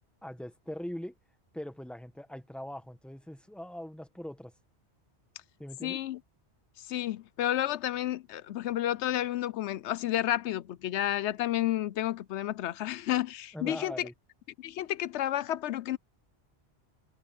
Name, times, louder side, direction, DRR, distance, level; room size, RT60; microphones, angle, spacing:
voice 1, 0.2-1.1 1.5-4.5 5.6-6.0 13.5-14.1, left 1 dB, ahead, 1.2 m, -41 dB
voice 2, 5.8-6.2 6.8-14.1 14.6-16.0, left 13 dB, 80° left, 0.9 m, -31 dB
omnidirectional pair, 1.2 m